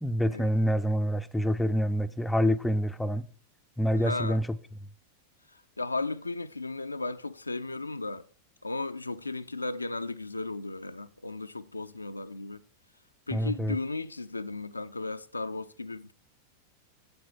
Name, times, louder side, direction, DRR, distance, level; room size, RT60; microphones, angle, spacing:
voice 1, 0.0-3.3 3.8-4.5 13.3-13.8, equal, 5° left, 0.5 m, -26 dB
voice 2, 3.9-4.4 5.5-8.3 8.6-12.6 13.3-16.1, left 3 dB, 80° left, 0.4 m, -35 dB
8.6 x 7.9 x 4.4 m
figure-of-eight pair, 90°, 0 cm